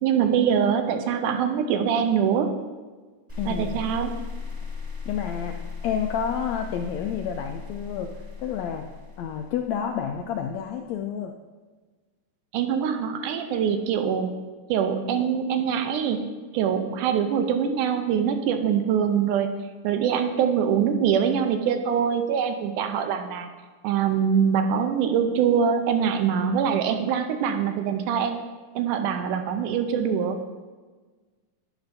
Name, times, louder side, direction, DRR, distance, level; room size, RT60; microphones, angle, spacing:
voice 1, 0.0-2.5 3.5-4.1 12.5-14.3 14.7-16.2 16.5-19.5 19.8-23.5 23.8-28.4 28.8-30.4, right 7 dB, 90° right, 7 dB, 2.2 m, -24 dB
sound 1, 3.3-10.4, left 5 dB, 5° right, 1.4 m, -37 dB
voice 2, 3.4-3.8 5.1-8.1 8.4-8.9 9.2-11.3, left 8 dB, 85° left, 4 dB, 1.5 m, -29 dB
10.5 x 9.5 x 2.7 m, 1.4 s
omnidirectional pair, 3.6 m